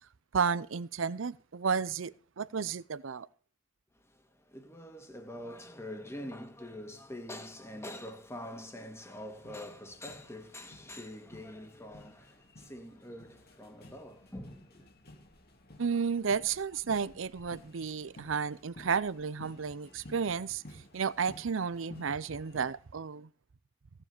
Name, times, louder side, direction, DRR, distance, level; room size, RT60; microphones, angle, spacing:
voice 1, 0.3-3.3 15.8-20.6 20.9-23.3, right 6 dB, 75° right, 0.6 m, -32 dB
voice 2, 3.9-14.9, left 1 dB, 15° left, 2.0 m, -45 dB
sound 1, 9.2-22.8, left 1 dB, 50° left, 2.3 m, -55 dB
17.0 x 7.5 x 6.8 m
head